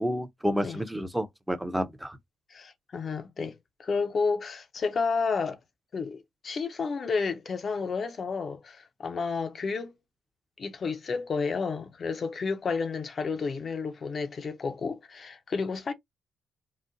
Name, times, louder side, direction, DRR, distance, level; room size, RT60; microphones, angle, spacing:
voice 1, 0.0-2.2, equal, 5° right, 0.6 m, -30 dB
voice 2, 2.5-5.6 5.9-9.9 10.6-15.9, left 4 dB, 45° left, 0.6 m, -31 dB
3.8 x 2.1 x 2.6 m
cardioid pair, 90°, 0 cm